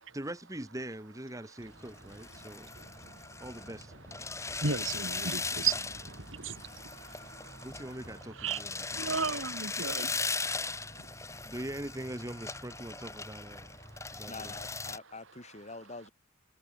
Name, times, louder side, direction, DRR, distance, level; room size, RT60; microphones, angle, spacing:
voice 1, 0.1-2.7 3.4-3.9 7.6-8.9 11.4-13.7 14.1-14.5, right 1 dB, 15° right, 2.1 m, -42 dB
sound 1, 1.6-15.0, left 4 dB, 15° left, 2.5 m, -39 dB
sound 2, 2.0-9.7, right 1 dB, 45° right, 5.1 m, -54 dB
voice 2, 2.4-3.4 4.3-7.7 8.4-11.5 13.8-14.3, right 5 dB, 70° right, 2.9 m, -37 dB
voice 3, 14.1-16.1, left 3 dB, 35° left, 4.9 m, -46 dB
head